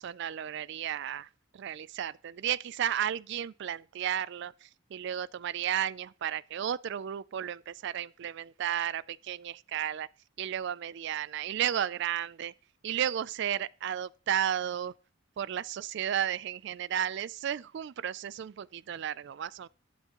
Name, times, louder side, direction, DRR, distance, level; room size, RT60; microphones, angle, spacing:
voice 1, 0.0-10.1 10.4-12.5 12.8-14.9 15.4-19.7, right 10 dB, 55° right, 0.3 m, -33 dB
11.5 x 8.1 x 3.0 m
head